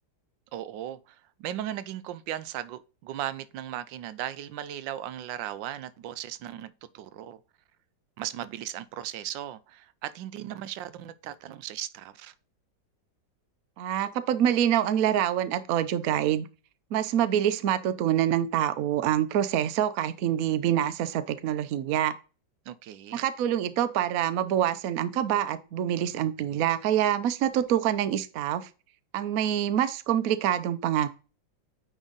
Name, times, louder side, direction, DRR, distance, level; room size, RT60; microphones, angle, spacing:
voice 1, 0.5-7.4 8.2-12.3 22.7-23.2, right 12 dB, 90° right, 1.3 m, -37 dB
voice 2, 13.8-16.5 16.9-22.1 23.1-28.7 29.1-31.1, right 10 dB, 65° right, 0.9 m, -26 dB
9.2 x 3.6 x 3.9 m
omnidirectional pair, 2.0 m